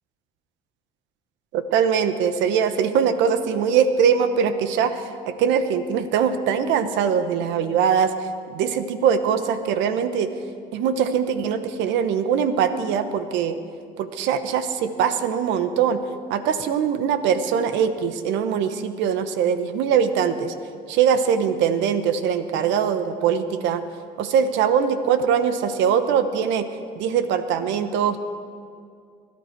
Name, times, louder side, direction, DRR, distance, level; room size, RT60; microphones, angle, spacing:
voice 1, 1.5-10.3 10.7-13.6 14.0-20.5 20.9-23.8 24.2-26.7 26.9-28.2, right 7 dB, 80° right, 10 dB, 0.9 m, -22 dB
20.5 x 11.5 x 4.6 m, 2.3 s
supercardioid pair, 85°, 18 cm